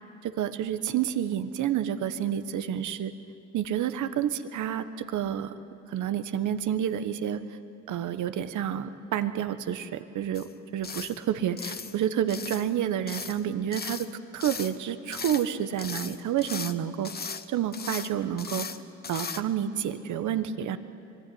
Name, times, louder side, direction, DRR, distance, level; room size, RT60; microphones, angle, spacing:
voice 1, 0.2-3.1 3.5-5.5 5.9-7.4 7.9-14.1 14.3-17.1 17.5-18.7 19.1-20.8, right 10 dB, 75° right, 11 dB, 1.2 m, -29 dB
sound 1, 10.3-10.5 10.8-11.2 11.6-12.0 12.3-12.7 13.1-13.4 13.7-14.1 14.4-14.8 15.1-15.5 15.8-16.7 17.0-17.5 17.7-18.1 18.4-18.8 19.0-19.4, left 5 dB, 30° left, 1.1 m, -37 dB
25.0 x 22.5 x 9.4 m, 2.8 s
cardioid pair, 90°, 30 cm